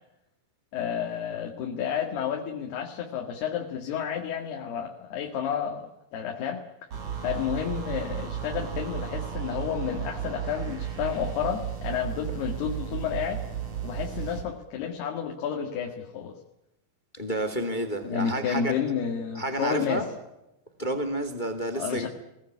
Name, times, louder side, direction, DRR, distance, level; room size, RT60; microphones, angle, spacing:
voice 1, 0.7-6.6 7.2-13.4 13.8-16.4 18.0-20.1 21.7-22.1, left 8 dB, 90° left, 2 dB, 4.0 m, -31 dB
sound 1, 6.9-14.5, right 9 dB, 45° right, 4.9 m, -34 dB
voice 2, 17.1-18.7 19.3-20.0 20.8-22.1, right 1 dB, 15° left, 9 dB, 1.9 m, -30 dB
23.0 x 18.5 x 9.8 m, 0.90 s
omnidirectional pair, 4.5 m